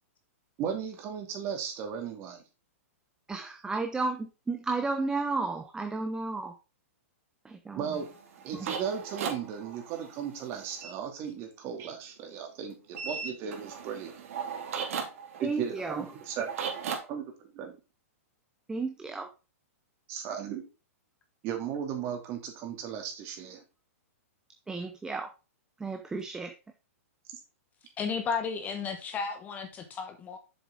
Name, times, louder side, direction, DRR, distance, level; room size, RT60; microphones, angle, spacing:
voice 1, 0.6-2.4 7.8-8.1 8.4-14.2 15.4-16.5 17.1-17.8 20.1-20.6 21.4-23.6 27.3-27.4, right 8 dB, 35° right, 2.7 m, -36 dB
voice 2, 3.3-6.5 7.7-7.8 15.4-16.0 18.7-19.3 24.7-25.3 25.8-26.5, right 3 dB, 10° right, 0.8 m, -32 dB
sound 1, 7.9-10.9 12.9-17.0, right 6 dB, 65° right, 2.8 m, -37 dB
voice 3, 28.0-30.4, left 5 dB, 20° left, 1.1 m, -33 dB
7.2 x 7.2 x 3.7 m
hypercardioid pair, 140°, 8 cm